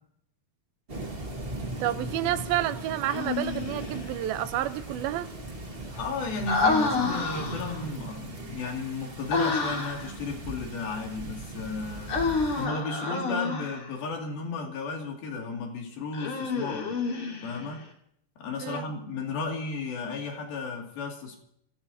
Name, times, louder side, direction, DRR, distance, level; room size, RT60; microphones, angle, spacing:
sound 1, 0.9-12.7, right 1 dB, 60° right, 0.6 m, -39 dB
voice 1, 1.8-5.3 18.6-18.9, right 12 dB, 80° right, 2.7 m, -30 dB
Human voice, 3.1-4.0 6.5-7.8 9.3-10.1 12.1-13.9 16.1-17.7, left 4 dB, 40° left, 3.1 m, -28 dB
voice 2, 5.8-12.1 12.6-17.0 17.4-17.9 18.4-21.4, left 4 dB, 75° left, 4.3 m, -34 dB
27.0 x 15.5 x 2.8 m
omnidirectional pair, 4.3 m